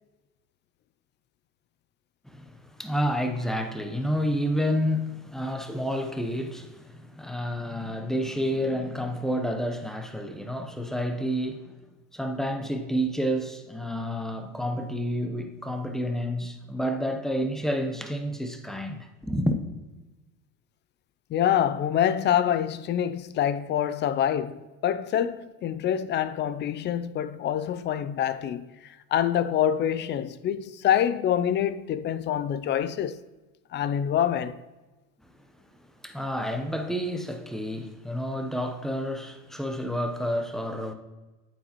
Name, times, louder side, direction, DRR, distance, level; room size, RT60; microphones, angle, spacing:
voice 1, 2.2-11.8 12.1-19.6 36.0-40.9, equal, ahead, 0.8 m, -29 dB
voice 2, 21.3-33.2 33.7-34.6, left 10 dB, 30° left, 0.4 m, -26 dB
8.5 x 8.3 x 3.0 m
supercardioid pair, 110°, 36 cm